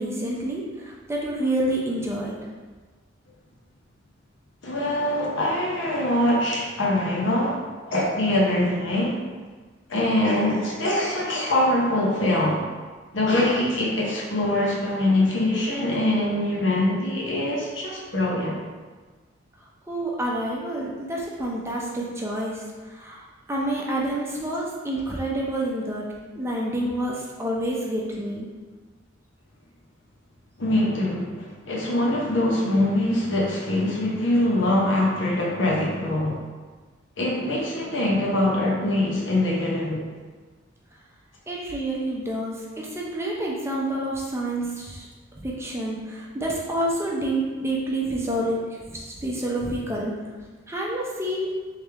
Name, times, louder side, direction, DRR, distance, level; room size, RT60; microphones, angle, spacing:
voice 1, 0.0-2.4 19.9-26.1 26.4-28.5 41.5-45.1 45.4-48.6 48.8-50.1 50.7-51.5, right 1 dB, 15° right, -3 dB, 0.5 m, -28 dB
voice 2, 4.6-9.3 9.9-12.7 13.1-18.6 30.6-36.4 37.2-40.0, left 1 dB, 70° left, -3 dB, 0.8 m, -23 dB
3.3 x 3.2 x 3.4 m, 1.4 s
head